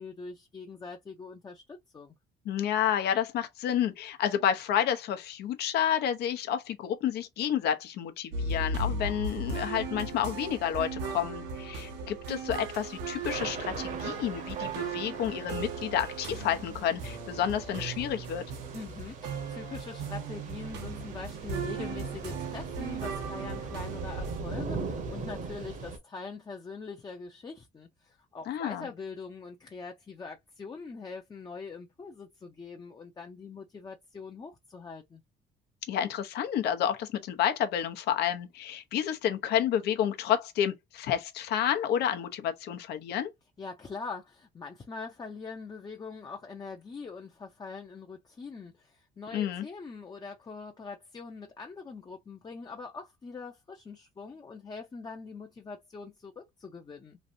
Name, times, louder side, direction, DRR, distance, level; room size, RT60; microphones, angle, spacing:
voice 1, 0.0-2.1 18.7-35.2 43.6-57.2, left 4 dB, 25° left, 0.6 m, -43 dB
voice 2, 2.4-18.5 28.5-28.9 35.9-43.3 49.3-49.7, left 9 dB, 75° left, 0.7 m, -30 dB
sound 1, 8.3-24.4, right 3 dB, 90° right, 1.1 m, -37 dB
Thunder / Rain, 12.7-26.0, right 4 dB, 50° right, 0.9 m, -41 dB
3.1 x 2.5 x 2.6 m
cardioid pair, 110°, 17 cm